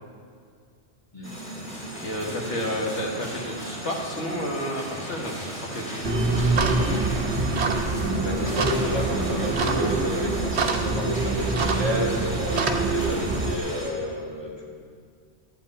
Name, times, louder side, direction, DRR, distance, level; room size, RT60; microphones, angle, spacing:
sound 1, 1.2-13.9, equal, 45° left, 2.9 m, -37 dB
voice 1, 2.0-6.5, equal, 75° left, -1 dB, 1.9 m, -31 dB
sound 2, 6.0-13.6, right 3 dB, 65° right, 1.1 m, -25 dB
voice 2, 8.0-14.7, left 1 dB, 20° left, -4 dB, 1.9 m, -30 dB
12.5 x 5.5 x 8.3 m, 2.2 s
omnidirectional pair, 1.2 m